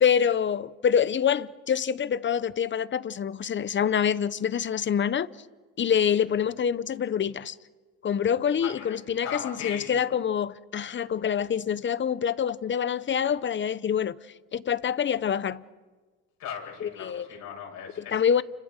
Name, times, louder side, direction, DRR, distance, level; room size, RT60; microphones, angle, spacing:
voice 1, 0.0-5.3 5.8-7.5 8.0-14.1 14.5-15.6 16.8-17.3 18.0-18.4, left 8 dB, 35° left, 0.8 m, -26 dB
voice 2, 8.6-9.0 9.2-9.9 16.4-18.2, left 7 dB, 70° left, 8.0 m, -38 dB
30.0 x 25.5 x 6.5 m
cardioid pair, 105°, 35 cm